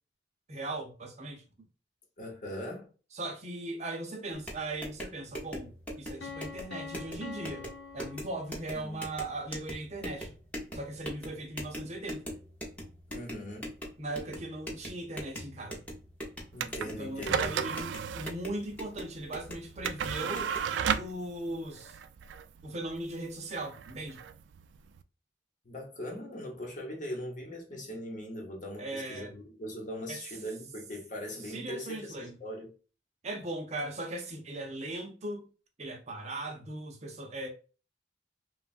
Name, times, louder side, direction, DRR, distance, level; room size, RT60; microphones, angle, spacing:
voice 1, 0.5-1.4 3.1-7.7 7.9-10.3 10.7-12.3 14.0-15.8 16.8-20.5 21.0-22.0 22.6-24.2 28.8-29.3 30.1-30.2 31.5-32.4 33.2-35.4 35.8-37.5, right 2 dB, 35° right, 0.6 m, -38 dB
voice 2, 2.2-2.9 8.8-9.0 13.1-13.7 16.5-17.7 25.6-32.7, equal, 45° left, 0.9 m, -40 dB
sound 1, 4.3-21.0, equal, 10° left, 0.8 m, -43 dB
Piano, 6.2-9.0, left 5 dB, 80° left, 0.5 m, -45 dB
sound 2, 16.5-25.0, right 7 dB, 80° right, 0.3 m, -35 dB
3.1 x 2.3 x 2.4 m
head